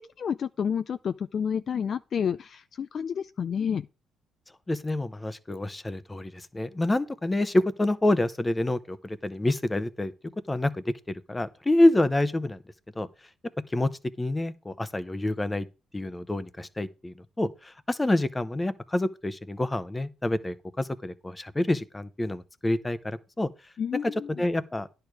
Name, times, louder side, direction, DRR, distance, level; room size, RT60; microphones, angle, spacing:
voice 1, 0.2-3.8 23.8-24.3, left 7 dB, 50° left, 0.4 m, -29 dB
voice 2, 4.7-10.1 10.5-10.9 11.3-12.6 13.0-13.1 13.7-13.9 14.2-15.7 15.9-23.5 24.0-24.9, left 1 dB, 15° left, 0.8 m, -27 dB
10.5 x 6.7 x 4.6 m
cardioid pair, 100°, 0 cm